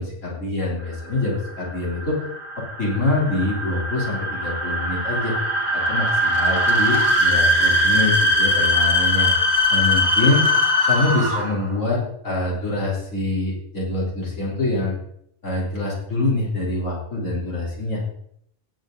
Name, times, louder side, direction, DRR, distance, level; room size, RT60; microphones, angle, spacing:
voice 1, 0.0-2.2 2.8-5.3 5.7-9.3 9.7-10.5 10.9-15.0 15.4-18.1, left 2 dB, 80° left, -4 dB, 4.2 m, -25 dB
sound 1, 1.0-11.7, left 1 dB, 40° right, 2.0 m, -21 dB
18.0 x 7.8 x 3.9 m, 0.71 s
omnidirectional pair, 1.3 m